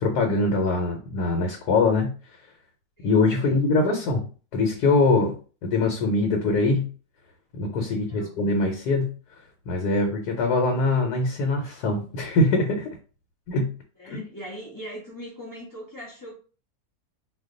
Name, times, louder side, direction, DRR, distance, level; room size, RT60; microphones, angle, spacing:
voice 1, 0.0-2.1 3.0-5.4 5.6-6.9 7.5-9.1 9.7-12.9 13.5-13.7 14.1-14.2, left 3 dB, 85° left, 4 dB, 1.2 m, -23 dB
voice 2, 3.0-4.0 7.9-8.4 14.0-16.3, equal, 30° left, -6 dB, 0.3 m, -41 dB
2.6 x 2.2 x 3.7 m, 0.37 s
omnidirectional pair, 1.7 m